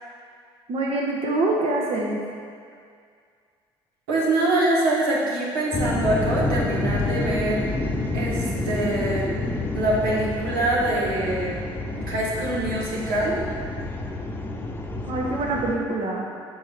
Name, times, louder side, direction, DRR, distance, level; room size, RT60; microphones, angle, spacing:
voice 1, 0.7-2.2 15.0-16.3, right 2 dB, 55° right, -1 dB, 1.0 m, -25 dB
voice 2, 4.1-7.6 8.1-9.3 9.7-11.5 12.0-13.4, right 2 dB, 90° right, -4 dB, 1.3 m, -24 dB
sound 1, 5.7-15.8, left 2 dB, 15° left, 0.8 m, -28 dB
7.5 x 3.4 x 5.8 m, 2.2 s
supercardioid pair, 65°, 12 cm